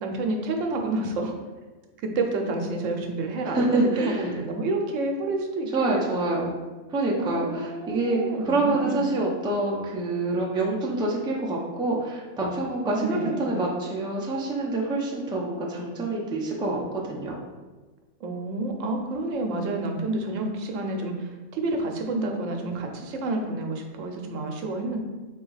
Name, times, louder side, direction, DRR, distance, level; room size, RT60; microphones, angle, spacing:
voice 1, 0.0-1.4 2.0-6.1 7.2-9.0 12.8-13.6 18.2-25.0, right 2 dB, 85° right, 3 dB, 1.0 m, -29 dB
voice 2, 3.5-4.3 5.7-6.5 6.9-8.2 8.5-17.4, right 2 dB, 5° right, -3 dB, 0.3 m, -26 dB
4.0 x 2.9 x 3.9 m, 1.3 s
omnidirectional pair, 1.3 m